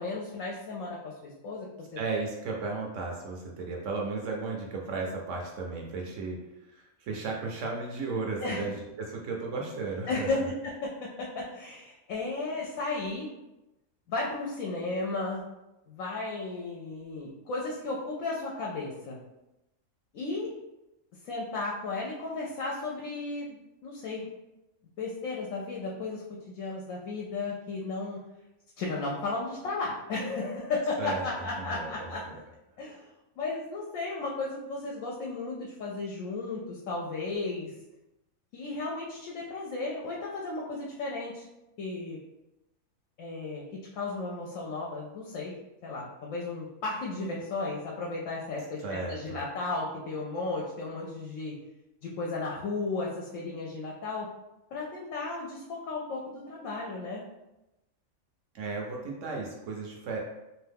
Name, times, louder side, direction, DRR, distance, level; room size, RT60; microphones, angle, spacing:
voice 1, 0.0-2.0 8.4-8.7 10.1-13.3 14.1-15.4 15.9-19.2 20.1-20.5 21.2-24.3 25.0-28.2 28.8-32.2 32.8-33.1 33.4-37.7 38.5-41.5 41.8-42.2 43.2-43.6 43.9-45.5 45.8-51.6 52.0-54.3 54.7-57.2, left 3 dB, 70° left, -3 dB, 0.9 m, -34 dB
voice 2, 2.0-6.4 6.7-10.4 31.0-32.4 48.8-49.4 58.5-60.2, right 3 dB, 65° right, 0 dB, 0.8 m, -35 dB
2.7 x 2.3 x 3.4 m, 0.95 s
omnidirectional pair, 1.5 m